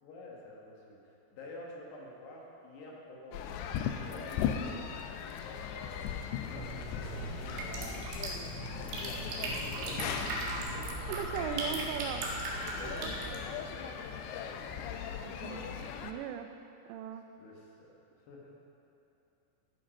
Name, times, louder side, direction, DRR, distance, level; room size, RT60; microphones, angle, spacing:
voice 1, 0.0-4.9 5.4-8.5 8.8-10.2 10.6-11.0 12.8-14.3 17.4-18.6, left 1 dB, 65° left, -2 dB, 3.2 m, -50 dB
sound 1, 3.3-16.1, left 8 dB, 85° left, 2.5 m, -38 dB
sound 2, 6.5-13.4, right 2 dB, 65° right, 3.5 m, -38 dB
voice 2, 11.1-12.2 13.0-13.1 15.2-16.5 16.9-17.2, right 9 dB, 80° right, 8 dB, 3.1 m, -38 dB
14.5 x 10.0 x 5.2 m, 2.8 s
omnidirectional pair, 6.0 m